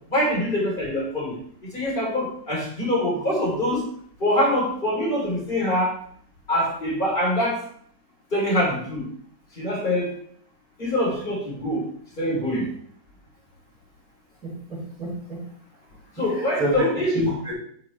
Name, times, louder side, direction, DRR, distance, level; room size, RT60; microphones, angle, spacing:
voice 1, 0.1-1.3 1.7-3.8 4.2-5.9 6.5-7.6 8.3-9.1 9.6-10.1 10.8-11.9 12.2-12.7 16.2-17.2, left 1 dB, 25° left, -4 dB, 3.8 m, -24 dB
voice 2, 14.4-15.4 16.2-16.9 17.1-17.5, equal, 50° right, -9 dB, 4.9 m, -28 dB
12.0 x 6.3 x 3.4 m, 0.62 s
omnidirectional pair, 2.0 m